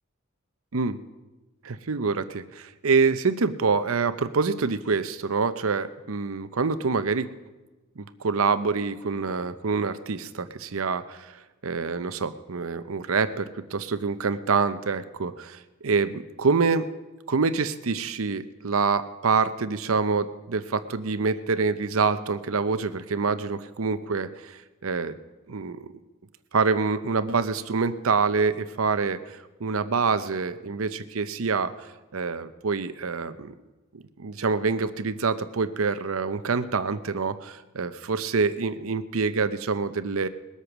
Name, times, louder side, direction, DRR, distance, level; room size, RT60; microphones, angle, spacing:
voice 1, 1.6-7.3 8.0-11.3 11.6-16.9 17.3-25.2 25.5-25.9 26.5-31.7 32.1-33.5 33.9-40.3, right 4 dB, 80° right, 12 dB, 0.7 m, -26 dB
20.5 x 8.2 x 6.1 m, 1.2 s
head